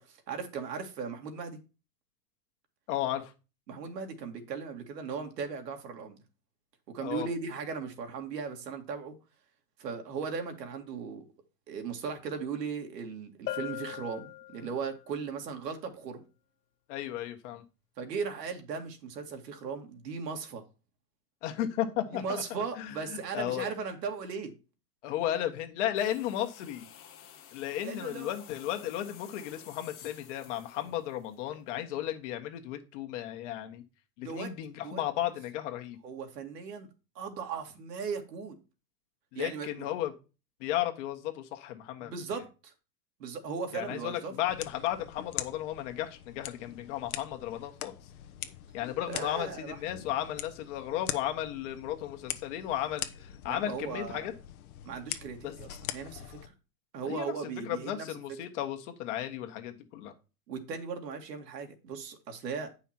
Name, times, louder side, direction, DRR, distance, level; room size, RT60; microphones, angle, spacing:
voice 1, 0.1-1.6 3.7-6.2 6.9-9.2 9.8-11.2 11.7-16.2 18.0-20.6 22.1-24.5 27.8-28.3 34.2-34.5 34.8-35.0 36.0-36.9 37.2-38.6 39.3-39.9 42.0-42.7 43.2-44.3 49.1-49.8 53.5-54.3 54.9-56.5 56.9-58.1 60.5-62.7, right 5 dB, 85° right, 2.3 m, -37 dB
voice 2, 2.9-3.3 7.0-7.3 16.9-17.6 21.4-22.4 22.8-23.7 25.0-26.9 27.5-33.8 34.2-36.0 39.3-40.2 40.6-42.1 43.7-47.9 48.7-54.3 55.4-55.5 57.0-60.1, left 12 dB, 50° left, 1.6 m, -34 dB
Bell, 13.5-15.1, left 16 dB, 80° left, 0.6 m, -39 dB
sound 1, 26.0-31.7, left 9 dB, 25° left, 1.5 m, -53 dB
sound 2, 44.5-56.5, left 12 dB, 65° left, 1.1 m, -43 dB
9.1 x 5.7 x 4.4 m
supercardioid pair, 150°, 47 cm